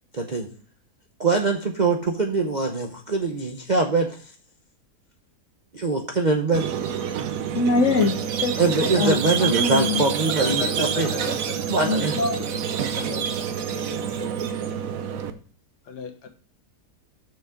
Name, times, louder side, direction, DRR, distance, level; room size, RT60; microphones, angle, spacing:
voice 1, 0.1-0.5 1.2-4.2 5.7-6.7 8.6-11.1 11.7-12.1, right 3 dB, 35° right, 3 dB, 0.7 m, -23 dB
Squeak, 6.5-15.3, right 8 dB, 60° right, 1.2 m, -27 dB
voice 2, 7.5-8.1 8.4-8.6 8.8-10.0 11.8-12.4, left 3 dB, 55° left, 9 dB, 1.0 m, -23 dB
voice 3, 10.4-12.5 12.8-13.3 13.7-14.3 15.8-16.3, left 5 dB, 85° left, 5 dB, 1.8 m, -35 dB
7.0 x 6.3 x 5.0 m, 0.43 s
omnidirectional pair, 1.7 m